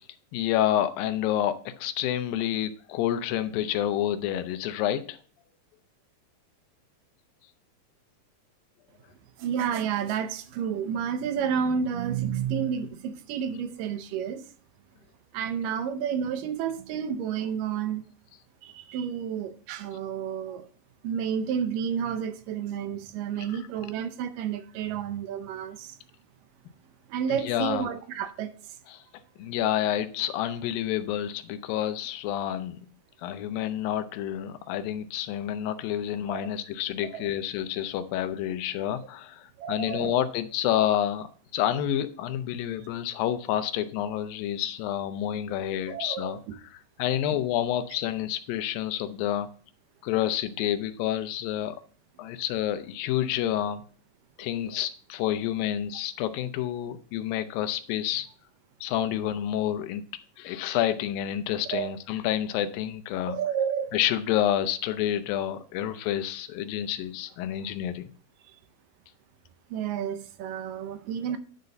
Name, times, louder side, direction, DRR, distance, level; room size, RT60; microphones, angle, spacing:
voice 1, 0.3-5.2 27.3-27.9 28.9-29.0 29.4-32.8 33.2-46.4 47.0-49.5 50.0-51.8 52.2-53.8 54.4-58.3 58.8-60.0 60.4-63.4 63.9-68.1, left 11 dB, 85° left, 2.5 m, -29 dB
voice 2, 9.4-14.4 15.3-18.1 18.6-20.7 21.0-26.0 27.1-28.6 36.3-36.5 37.0-37.2 39.6-40.2 45.9-46.5 47.3-47.4 54.7-54.9 61.7-62.0 63.1-64.0 68.5-68.6 69.7-71.4, right 8 dB, 75° right, 2.4 m, -31 dB
10.0 x 4.0 x 6.5 m
omnidirectional pair, 4.0 m